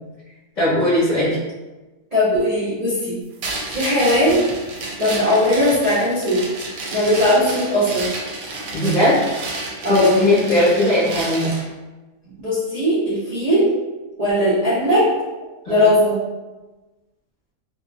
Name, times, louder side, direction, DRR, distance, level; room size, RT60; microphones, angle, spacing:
voice 1, 0.6-1.4 8.7-9.2 9.9-11.6 15.6-15.9, left 1 dB, 40° left, -11 dB, 0.8 m, -18 dB
voice 2, 2.1-3.2 3.7-4.4 5.0-6.4 6.9-8.1 9.8-10.3 12.4-13.7 14.2-15.1 15.7-16.2, left 1 dB, 60° right, -10 dB, 0.4 m, -18 dB
sound 1, 3.4-11.7, right 2 dB, 80° right, 1.1 m, -31 dB
2.8 x 2.3 x 2.4 m, 1.2 s
omnidirectional pair, 1.7 m